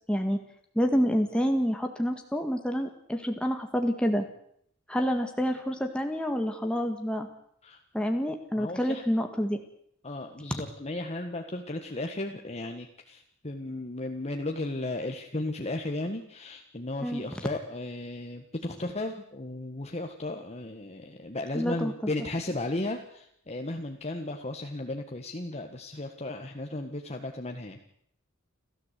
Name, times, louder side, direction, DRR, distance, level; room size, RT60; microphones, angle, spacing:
voice 1, 0.7-4.2 4.9-7.3 7.9-9.6 17.0-17.2 21.5-21.9, equal, 5° left, 4 dB, 1.7 m, -28 dB
voice 2, 8.5-9.0 10.0-27.8, left 2 dB, 35° left, 4 dB, 1.6 m, -35 dB
29.5 x 13.5 x 8.3 m, 0.69 s
head